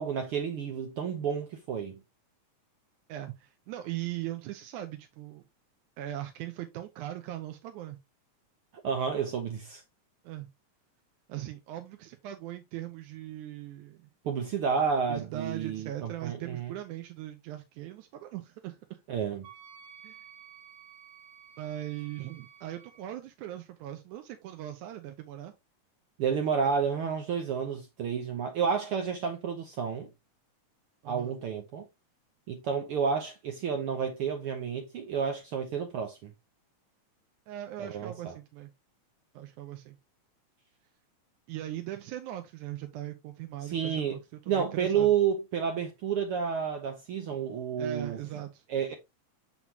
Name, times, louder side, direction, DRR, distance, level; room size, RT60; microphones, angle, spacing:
voice 1, 0.0-2.0 8.8-9.8 14.2-16.7 19.1-19.5 26.2-30.1 31.0-31.9 32.5-36.3 37.8-38.3 43.6-44.2 44.5-48.2 48.7-48.9, right 7 dB, 70° right, 1.3 m, -30 dB
voice 2, 3.1-5.4 6.0-8.0 10.2-10.5 11.3-14.1 15.1-18.8 20.0-20.2 21.6-25.5 31.0-31.4 37.5-38.7 39.3-40.0 41.5-45.1 47.8-48.6, right 13 dB, 90° right, 2.2 m, -40 dB
Wind instrument woodwind instrument, 19.4-23.0, right 8 dB, 50° right, 1.7 m, -52 dB
6.1 x 5.6 x 2.8 m
omnidirectional pair, 3.4 m